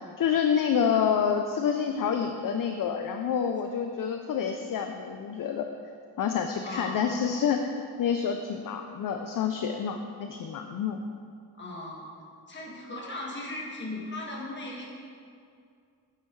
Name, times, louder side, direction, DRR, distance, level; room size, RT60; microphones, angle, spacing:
voice 1, 0.2-5.7 6.2-7.7 8.0-11.0, left 7 dB, 55° left, 5 dB, 0.5 m, -28 dB
voice 2, 6.6-7.0 11.5-12.1 12.5-14.8, left 1 dB, 25° left, -4 dB, 1.7 m, -37 dB
9.2 x 8.4 x 3.1 m, 2.3 s
wide cardioid pair, 155°, 41 cm